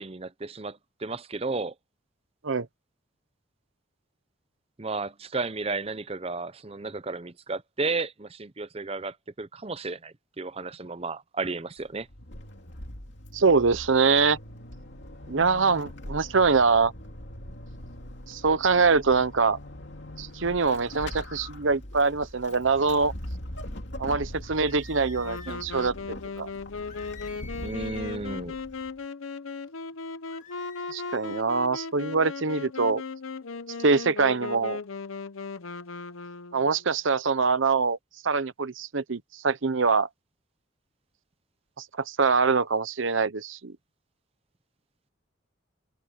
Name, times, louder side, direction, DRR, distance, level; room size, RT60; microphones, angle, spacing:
voice 1, 0.0-1.7 4.8-12.1 27.6-28.6, right 3 dB, 30° right, 0.7 m, -33 dB
Vehicle / Accelerating revving vroom / Squeak, 11.8-29.0, left 1 dB, 60° left, 2.6 m, -42 dB
voice 2, 13.3-14.4 15.3-16.9 18.3-19.6 20.2-23.1 24.0-26.5 30.9-33.0 33.8-34.8 36.5-38.0 38.2-40.1 41.8-43.7, right 4 dB, 75° right, 0.8 m, -24 dB
sound 1, 24.4-25.6 26.9-28.3 30.3-31.5, left 5 dB, 40° left, 2.8 m, -49 dB
Wind instrument woodwind instrument, 25.2-36.9, left 4 dB, 90° left, 0.9 m, -37 dB
head